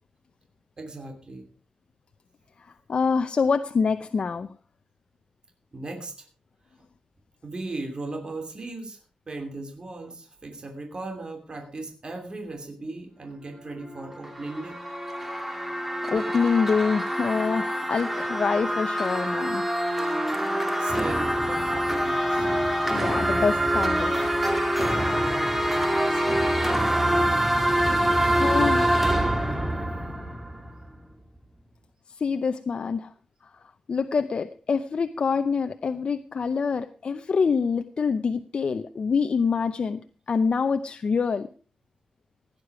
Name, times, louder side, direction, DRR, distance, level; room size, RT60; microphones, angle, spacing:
voice 1, 0.8-1.5 5.7-6.3 7.4-9.0 9.3-14.8 20.8-22.5 26.0-26.6, right 2 dB, 45° right, 3 dB, 2.8 m, -37 dB
voice 2, 2.6-4.5 15.5-19.6 22.9-24.3 28.4-29.2 32.1-33.1 33.9-41.5, left 5 dB, 55° left, 9 dB, 0.7 m, -26 dB
sound 1, 14.0-31.0, right 1 dB, 10° right, 2.1 m, -25 dB
16.5 x 9.8 x 4.8 m, 0.39 s
wide cardioid pair, 115°, 2 cm